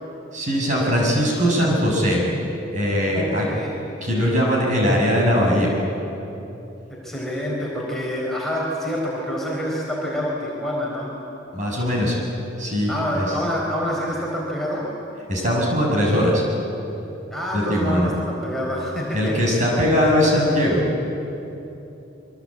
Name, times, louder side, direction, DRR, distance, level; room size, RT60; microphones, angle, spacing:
voice 1, 0.3-2.2 2.7-3.5 4.0-5.7 11.5-12.2 12.6-13.3 15.3-16.4 17.5-18.1 19.1-20.8, equal, 40° right, -2 dB, 6.8 m, -20 dB
voice 2, 3.1-3.7 6.9-11.1 12.9-14.9 17.3-19.6, equal, ahead, -4 dB, 4.4 m, -27 dB
27.0 x 23.5 x 8.7 m, 3.0 s
head